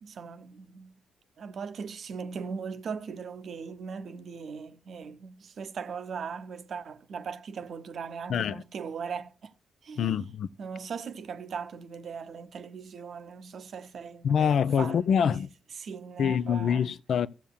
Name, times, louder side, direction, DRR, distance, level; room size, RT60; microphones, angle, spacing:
voice 1, 0.0-0.9 1.4-9.5 9.8-10.2 10.6-15.4 15.8-16.8, right 6 dB, 55° right, 0.7 m, -39 dB
voice 2, 8.3-8.6 10.0-10.5 14.2-15.5 16.2-17.3, left 7 dB, 60° left, 0.4 m, -25 dB
14.5 x 7.3 x 2.2 m
hypercardioid pair, 40°, 0 cm